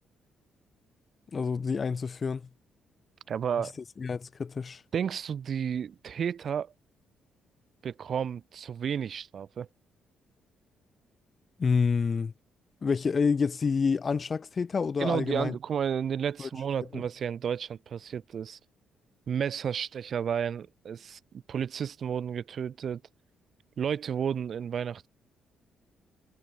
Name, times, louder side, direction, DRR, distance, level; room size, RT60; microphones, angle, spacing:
voice 1, 1.3-2.4 4.0-4.8 11.6-12.3 12.8-15.5 16.4-16.5 16.9-17.0, left 5 dB, 40° left, 1.1 m, -28 dB
voice 2, 3.3-3.7 4.9-6.7 7.8-9.7 15.0-18.6 19.3-23.0 23.8-25.1, right 8 dB, 55° right, 1.4 m, -32 dB
cardioid pair, 90°, 0 cm